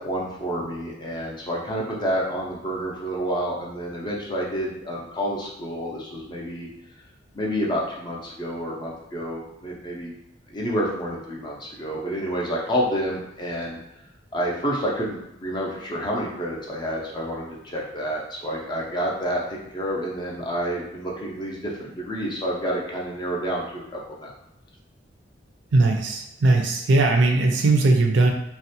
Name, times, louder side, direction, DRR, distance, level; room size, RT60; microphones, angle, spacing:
voice 1, 0.0-6.7 7.3-10.1 10.5-13.8 14.3-24.3, equal, 25° left, -3 dB, 0.5 m, -29 dB
voice 2, 25.7-28.3, right 2 dB, 70° right, 2 dB, 0.4 m, -19 dB
2.5 x 2.1 x 2.7 m, 0.87 s
head